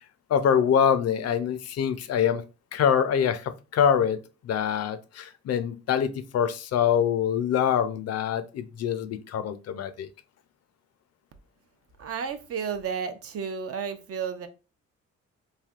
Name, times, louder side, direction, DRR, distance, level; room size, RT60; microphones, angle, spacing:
voice 1, 0.3-2.4 2.7-4.2 4.4-10.1, left 8 dB, 55° left, 0.5 m, -25 dB
voice 2, 12.0-14.5, right 6 dB, 50° right, 0.6 m, -32 dB
3.2 x 2.6 x 2.4 m
cardioid pair, 90°, 30 cm